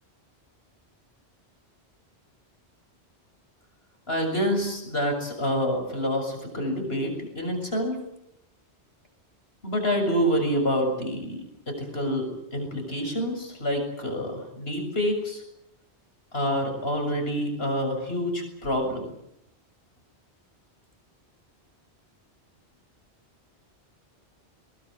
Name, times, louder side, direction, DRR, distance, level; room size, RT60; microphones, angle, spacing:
voice 1, 4.1-8.0 9.6-15.4 16.3-19.1, equal, 60° left, 4 dB, 7.3 m, -27 dB
23.0 x 20.5 x 10.0 m, 0.79 s
omnidirectional pair, 1.2 m